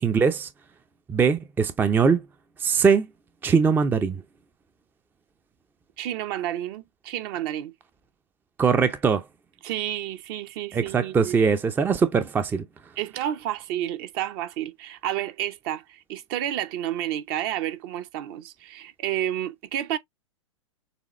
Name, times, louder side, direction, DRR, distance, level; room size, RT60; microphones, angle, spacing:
voice 1, 0.0-0.5 1.1-2.2 2.6-3.1 3.4-4.2 8.6-9.2 10.7-12.6, right 5 dB, 10° right, 0.5 m, -21 dB
voice 2, 6.0-7.7 9.6-11.4 13.0-20.0, right 12 dB, 45° right, 0.8 m, -30 dB
6.8 x 2.3 x 3.0 m
figure-of-eight pair, 105°, 17 cm